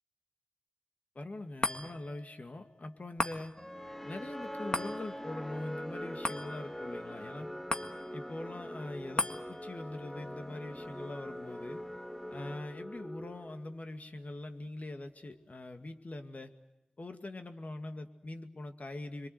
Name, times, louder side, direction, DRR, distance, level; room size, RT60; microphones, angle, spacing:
voice 1, 1.2-3.5 4.0-7.5 8.1-11.8 12.3-16.5 17.0-19.3, left 2 dB, 65° left, 6 dB, 2.3 m, -43 dB
sound 1, 1.6-14.2 14.7-14.8, left 2 dB, 35° left, 1.8 m, -42 dB
sound 2, 3.6-13.8, equal, 10° left, 1.0 m, -43 dB
27.0 x 23.5 x 8.0 m, 0.94 s
wide cardioid pair, 45°, 3 cm